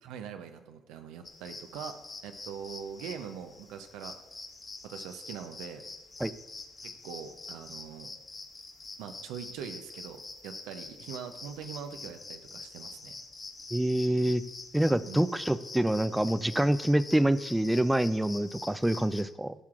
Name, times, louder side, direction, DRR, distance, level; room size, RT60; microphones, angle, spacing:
voice 1, 0.0-2.0 2.2-4.1 4.8-5.8 6.8-8.1 9.0-13.2 15.0-15.2, right 7 dB, 80° right, 7 dB, 0.5 m, -42 dB
sound 1, 1.2-19.2, left 3 dB, 35° left, 1.4 m, -45 dB
voice 2, 13.7-14.4 14.7-19.5, right 1 dB, 10° right, 15 dB, 0.4 m, -26 dB
13.0 x 5.7 x 2.4 m, 1.0 s
hypercardioid pair, 55°, 0 cm